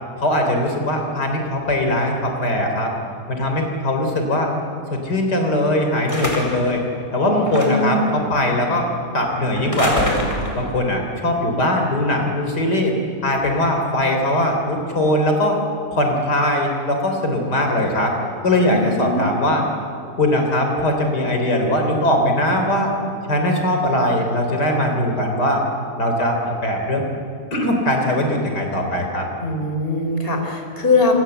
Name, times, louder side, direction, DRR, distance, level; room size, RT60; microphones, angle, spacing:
voice 1, 0.2-2.9 3.3-4.5 4.9-6.8 7.1-8.9 9.1-10.3 10.6-12.9 13.2-15.6 15.9-18.1 18.4-19.6 20.2-22.9 23.3-25.6 26.0-27.1 27.5-29.3, left 1 dB, 90° left, 3 dB, 4.2 m, -20 dB
sound 1, 6.1-6.7 7.5-8.0 9.6-10.7, left 1 dB, 20° left, 4.8 m, -26 dB
voice 2, 7.2-8.0 18.7-19.3 29.4-31.1, left 2 dB, 35° left, 3 dB, 4.4 m, -21 dB
27.0 x 27.0 x 8.0 m, 2.5 s
omnidirectional pair, 1.7 m